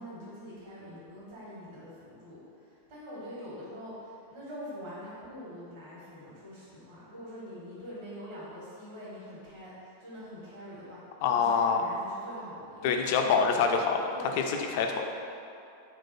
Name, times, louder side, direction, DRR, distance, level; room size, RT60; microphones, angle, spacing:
voice 1, 0.0-11.0 11.3-13.4 14.1-14.4, equal, 50° right, -7 dB, 1.3 m, -44 dB
voice 2, 11.2-11.8 12.8-14.0 14.5-15.0, left 6 dB, 50° left, 4 dB, 0.3 m, -25 dB
3.7 x 2.4 x 4.2 m, 2.5 s
figure-of-eight pair, 90°, 0 cm